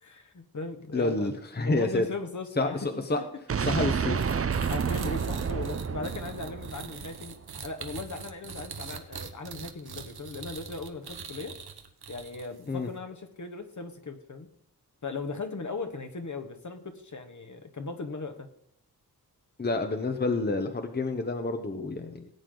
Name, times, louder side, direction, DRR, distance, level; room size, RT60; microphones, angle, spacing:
voice 1, 0.0-1.3 1.6-3.0 4.6-11.6 12.1-14.5 15.0-18.5, left 3 dB, 50° left, 6 dB, 1.5 m, -38 dB
voice 2, 0.9-2.1 2.6-3.2 3.6-4.2 12.7-12.9 19.6-22.3, left 2 dB, 25° left, 6 dB, 1.0 m, -29 dB
sound 1, 3.5-7.4, right 6 dB, 35° right, 0.6 m, -30 dB
sound 2, 4.2-12.7, right 6 dB, 75° right, 1.3 m, -42 dB
18.0 x 8.7 x 3.9 m, 0.75 s
wide cardioid pair, 110°, 39 cm